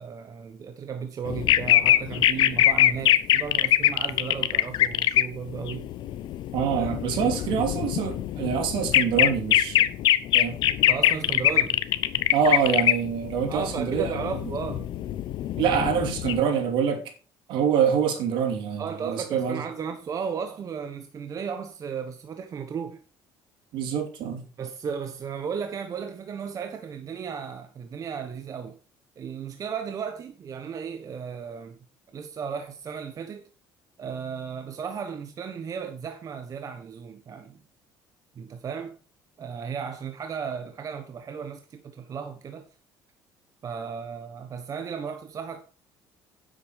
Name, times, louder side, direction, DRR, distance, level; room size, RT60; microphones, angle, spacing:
voice 1, 0.0-5.9 6.8-6.9 7.3-7.4 10.9-11.8 13.5-14.9 18.8-23.0 24.6-28.8 29.2-31.8 32.1-33.5 34.0-37.6 38.3-39.0 39.4-42.7 43.6-45.6, right 6 dB, 40° right, 1.2 m, -35 dB
sound 1, 1.3-5.2 5.5-16.4, left 13 dB, 65° left, 0.8 m, -23 dB
voice 2, 6.5-9.9 10.3-10.6 12.3-14.2 15.6-17.0 17.5-19.6 23.7-24.4, right 7 dB, 70° right, 2.8 m, -25 dB
9.6 x 8.1 x 4.9 m
cardioid pair, 105°, 9 cm